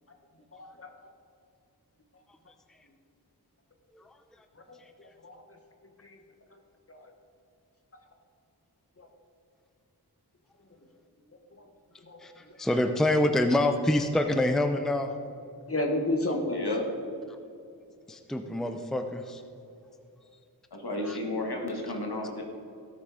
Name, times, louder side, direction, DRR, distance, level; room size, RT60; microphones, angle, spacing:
voice 1, 0.5-0.9 4.5-5.6 6.0-6.2 6.9-7.1 9.0-9.1 11.6-11.7 12.0-12.8 15.7-16.6, left 1 dB, 35° left, 3 dB, 1.6 m, -33 dB
voice 2, 12.2-15.1 18.1-19.4 21.0-21.2, left 1 dB, ahead, 7 dB, 0.6 m, -26 dB
voice 3, 16.5-16.8 20.7-22.4, left 2 dB, 75° left, 1 dB, 1.9 m, -32 dB
16.5 x 6.6 x 5.0 m, 2.6 s
wide cardioid pair, 70°, 39 cm